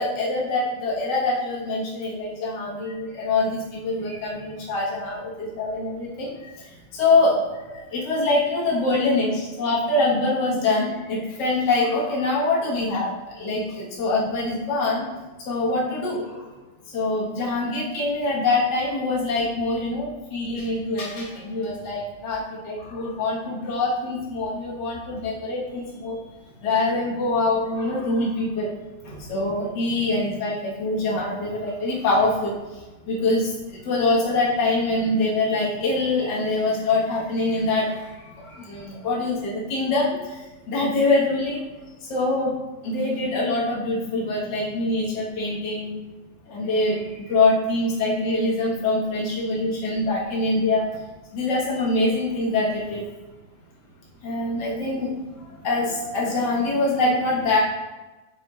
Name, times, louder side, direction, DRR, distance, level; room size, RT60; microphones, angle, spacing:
voice 1, 0.0-15.0 15.4-16.5 16.8-26.2 26.6-28.7 29.0-41.7 42.0-42.5 42.8-46.0 46.5-51.0 51.3-53.0 54.2-57.6, left 2 dB, 70° left, -7 dB, 1.0 m, -24 dB
7.5 x 5.9 x 2.4 m, 1.1 s
omnidirectional pair, 4.2 m